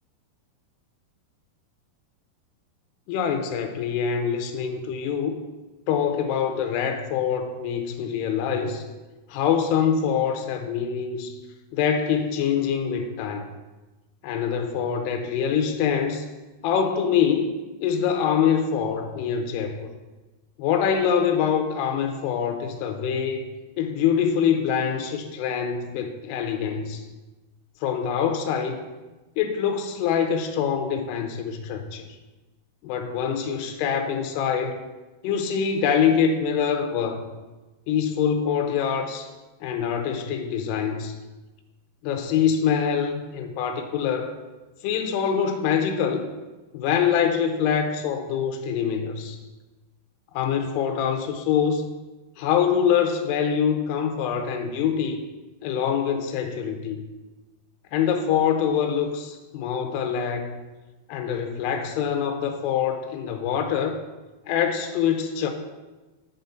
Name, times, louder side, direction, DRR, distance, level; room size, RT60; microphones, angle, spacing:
voice 1, 3.1-5.4 5.9-8.8 9.3-11.4 11.7-13.5 14.2-16.3 16.6-17.6 17.8-19.9 20.6-23.5 23.8-27.0 27.8-28.8 29.4-32.1 32.8-34.8 35.2-37.3 37.9-39.3 39.6-41.2 42.0-44.3 44.8-46.2 46.7-49.4 50.3-51.8 52.4-55.2 55.6-57.0 57.9-60.5 61.1-64.0 64.5-65.5, left 7 dB, 80° left, 6 dB, 2.8 m, -24 dB
8.1 x 5.4 x 5.7 m, 1.2 s
omnidirectional pair, 4.9 m